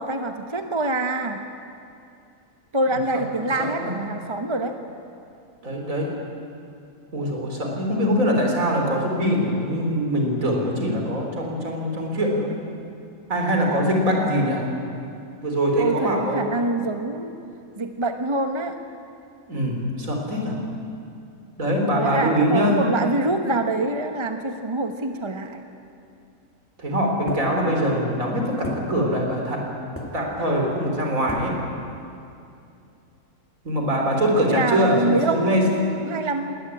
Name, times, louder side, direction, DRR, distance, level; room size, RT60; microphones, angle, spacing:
voice 1, 0.0-1.4 2.7-4.8 14.2-14.4 15.8-17.3 17.8-18.8 21.9-25.7 34.5-36.5, right 2 dB, 20° right, 6 dB, 1.0 m, -25 dB
voice 2, 3.6-4.0 5.6-6.1 7.1-12.5 13.3-14.7 15.4-16.5 19.5-20.6 21.6-22.9 26.8-29.7 30.1-31.6 33.6-35.7, equal, 60° right, 1 dB, 4.4 m, -23 dB
sound 1, 27.3-28.1 28.6-29.7 30.0-30.5 31.3-31.8, equal, 10° left, 2.5 m, -35 dB
20.0 x 18.5 x 9.7 m, 2.6 s
omnidirectional pair, 1.6 m